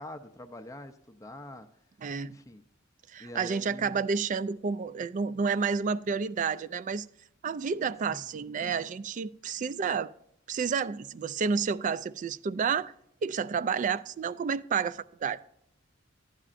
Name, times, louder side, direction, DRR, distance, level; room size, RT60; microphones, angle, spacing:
voice 1, 0.0-1.7 2.2-2.6 3.2-4.1 8.1-8.3, left 1 dB, 15° left, 0.5 m, -45 dB
voice 2, 2.0-2.4 3.1-7.1 7.4-10.1 10.5-12.9 13.2-15.4, right 5 dB, 40° right, 0.3 m, -30 dB
12.0 x 9.8 x 2.5 m
head